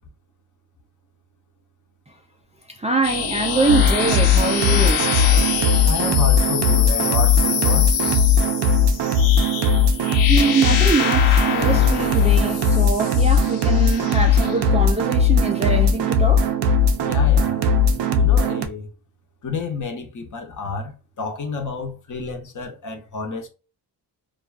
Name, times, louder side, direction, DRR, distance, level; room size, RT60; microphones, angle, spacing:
voice 1, 2.7-5.1 10.3-16.5, right 3 dB, 20° right, 0.3 m, -23 dB
sound 1, 3.0-14.7, left 7 dB, 90° left, 0.7 m, -26 dB
sound 2, 3.7-18.7, left 3 dB, 80° right, 0.6 m, -18 dB
voice 2, 5.9-7.9 17.0-18.9 19.4-23.5, left 4 dB, 45° left, 0.8 m, -30 dB
2.5 x 2.3 x 2.4 m
cardioid pair, 100°, 41 cm